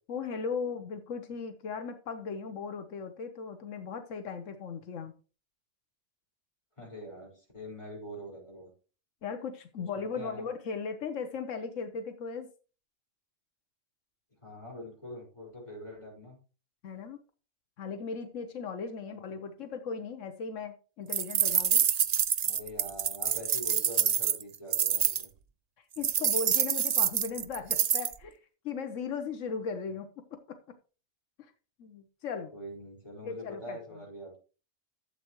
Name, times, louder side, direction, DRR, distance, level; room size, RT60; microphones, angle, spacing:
voice 1, 0.1-5.1 9.2-12.5 16.8-17.2 17.8-21.8 25.8-28.4 28.6-30.1 30.5-30.6 31.4-31.5 31.8-32.5 33.2-33.8, left 5 dB, 90° left, 8 dB, 1.3 m, -37 dB
voice 2, 6.8-8.7 10.0-10.5 14.4-16.4 19.1-19.2 22.4-25.3 32.5-34.4, equal, 25° left, -3 dB, 5.4 m, -44 dB
sound 1, 21.1-25.2 26.0-28.1, right 8 dB, 55° right, 0.5 m, -27 dB
12.5 x 7.7 x 3.1 m, 0.35 s
omnidirectional pair, 1.3 m